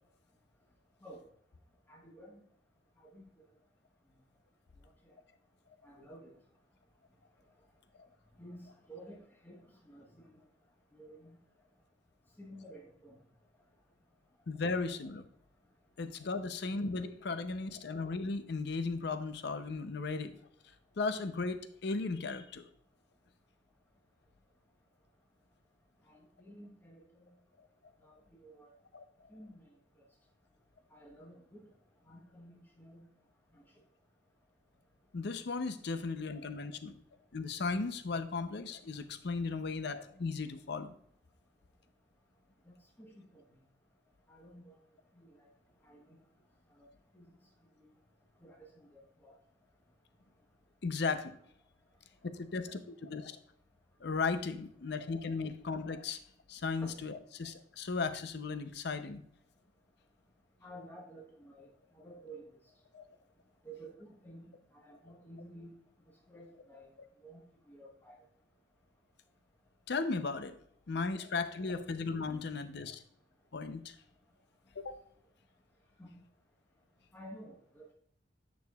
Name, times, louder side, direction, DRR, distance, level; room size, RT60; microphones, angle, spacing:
voice 1, 1.9-2.4 3.1-3.2 5.8-6.3 8.4-10.2 10.9-11.4 12.4-13.2 26.1-27.3 28.0-28.2 28.4-28.7 29.3-29.6 30.9-31.7 32.1-33.1 42.7-43.4 44.3-44.7 45.1-45.3 45.8-46.0 46.8-46.9 47.1-47.3 48.4-49.3 56.8-57.0 60.6-61.7 61.9-62.5 63.6-64.4 64.7-65.7 66.3-66.9 67.2-67.4 67.7-68.2 76.0-76.2 77.1-77.9, right 1 dB, 10° left, -2 dB, 1.0 m, -52 dB
voice 2, 14.5-15.3 16.0-20.3 21.0-22.7 28.9-29.3 35.1-36.9 37.3-40.9 50.8-51.4 52.3-53.4 54.0-56.2 56.5-59.2 62.9-63.0 69.9-70.6 70.9-73.0 73.5-74.0 74.8-75.0, left 4 dB, 65° left, 10 dB, 0.6 m, -36 dB
9.5 x 6.3 x 2.3 m, 0.68 s
head